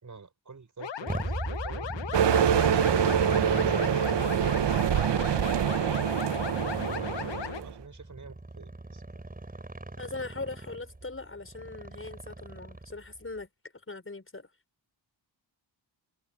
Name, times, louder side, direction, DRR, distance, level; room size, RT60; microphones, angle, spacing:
voice 1, 0.0-2.9 3.2-9.0, right 4 dB, 40° right, 5.6 m, -46 dB
sound 1, 0.8-7.6, left 9 dB, 75° left, 1.2 m, -37 dB
Motorcycle, 1.1-13.2, right 2 dB, 20° right, 6.8 m, -38 dB
sound 2, 2.1-7.7, right 9 dB, 65° right, 0.8 m, -25 dB
voice 2, 10.0-13.5 13.9-14.5, left 3 dB, 30° left, 5.9 m, -40 dB
wide cardioid pair, 115°, 45 cm